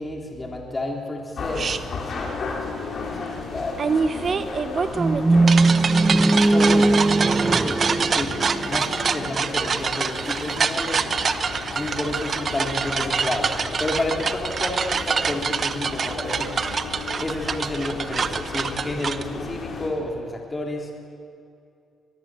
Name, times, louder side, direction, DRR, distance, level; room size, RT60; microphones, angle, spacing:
voice 1, 0.0-4.7 5.3-11.1 11.7-16.5 17.2-20.9, left 2 dB, 25° left, 0 dB, 3.5 m, -31 dB
sound 1, 1.4-19.9, left 4 dB, 55° left, 4.7 m, -35 dB
sound 2, 1.6-1.8 3.8-19.2, right 5 dB, 45° right, 1.0 m, -26 dB
sound 3, 5.0-9.1, right 2 dB, 20° right, 0.7 m, -19 dB
23.0 x 21.5 x 7.7 m, 2.4 s
cardioid pair, 90°, 0 cm